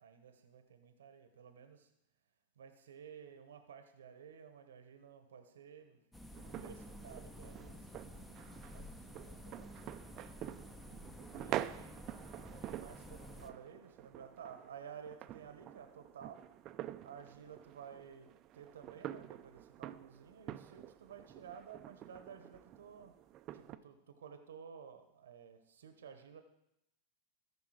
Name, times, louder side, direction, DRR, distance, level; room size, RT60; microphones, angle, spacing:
voice 1, 0.0-1.9 2.6-6.0 6.4-7.8 8.7-9.7 11.3-11.9 12.5-16.4 17.0-18.3 18.5-23.1 23.5-26.4, right 7 dB, 85° right, 8 dB, 0.9 m, -53 dB
sound 1, 6.1-13.5, left 1 dB, 10° left, 0.8 m, -52 dB
sound 2, 6.3-23.8, right 12 dB, 40° right, 0.4 m, -47 dB
14.0 x 5.2 x 4.8 m, 0.85 s
hypercardioid pair, 105°, 0 cm